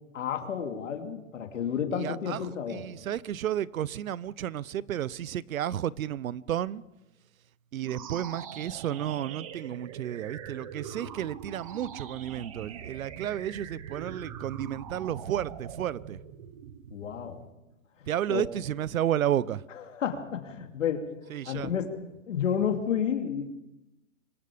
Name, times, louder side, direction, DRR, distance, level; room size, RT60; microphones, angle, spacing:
voice 1, 0.1-2.8 16.9-17.4 18.3-18.4 19.7-21.1 21.4-22.0 22.3-23.5, left 8 dB, 65° left, 3.0 m, -31 dB
voice 2, 1.9-2.4 2.7-6.8 7.7-16.2 18.1-19.6 21.3-21.7, right 11 dB, 85° right, 0.8 m, -32 dB
sound 1, 7.8-17.3, right 8 dB, 25° right, 1.1 m, -42 dB
25.0 x 20.5 x 5.2 m
hypercardioid pair, 175°, 40 cm